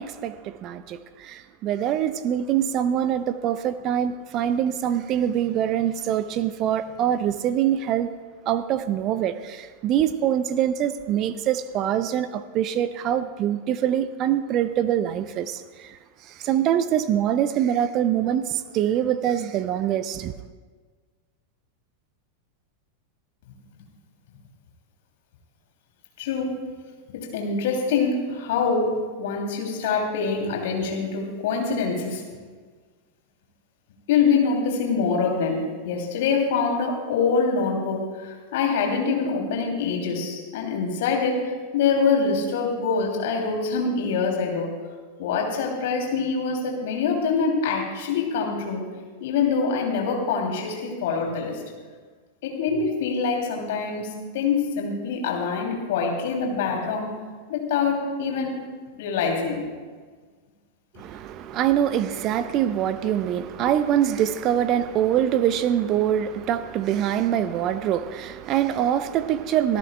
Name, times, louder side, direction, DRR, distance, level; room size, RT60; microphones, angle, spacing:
voice 1, 0.0-8.1 8.5-20.3 60.9-69.8, right 10 dB, 35° right, 13 dB, 0.5 m, -24 dB
voice 2, 26.2-26.6 27.1-28.9 29.2-32.2 34.1-44.7 45.2-48.8 49.2-51.6 52.4-57.1 57.5-58.6 59.0-59.6, left 5 dB, 55° left, 1 dB, 2.7 m, -25 dB
24.5 x 13.5 x 2.2 m, 1.5 s
figure-of-eight pair, 90°, 0 cm